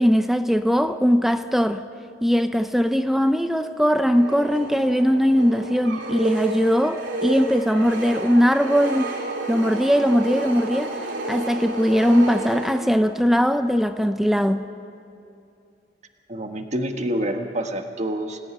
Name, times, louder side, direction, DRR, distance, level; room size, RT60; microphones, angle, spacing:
voice 1, 0.0-1.8 2.2-9.1 9.5-11.0 11.3-14.7, equal, ahead, 0.7 m, -20 dB
sound 1, 4.1-13.2, right 2 dB, 85° right, 3.4 m, -31 dB
voice 2, 16.3-18.4, right 1 dB, 40° right, 1.5 m, -27 dB
26.5 x 17.5 x 9.8 m
head